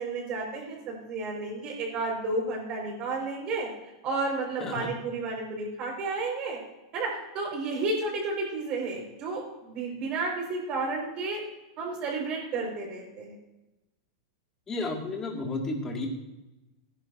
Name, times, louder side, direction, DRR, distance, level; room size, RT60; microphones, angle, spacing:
voice 1, 0.0-3.7 4.0-6.6 6.9-11.4 11.8-13.3, right 3 dB, 35° right, 0 dB, 4.9 m, -32 dB
voice 2, 4.6-4.9 14.7-16.1, left 2 dB, 20° left, 1 dB, 2.1 m, -32 dB
16.5 x 10.5 x 2.7 m, 0.99 s
supercardioid pair, 140°, 3 cm